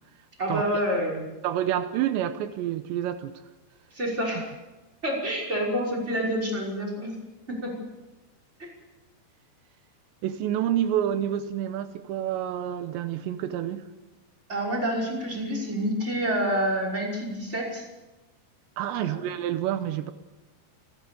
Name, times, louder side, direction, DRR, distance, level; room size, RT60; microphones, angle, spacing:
voice 1, 0.4-1.2 3.9-4.5 5.0-7.1 7.5-7.7 8.6-8.7 14.5-17.9 19.0-19.2, equal, 15° right, -2 dB, 5.7 m, -28 dB
voice 2, 1.4-3.4 10.2-13.9 18.8-20.1, right 11 dB, 85° right, 10 dB, 3.1 m, -28 dB
29.5 x 13.5 x 6.9 m, 1.1 s
omnidirectional pair, 5.0 m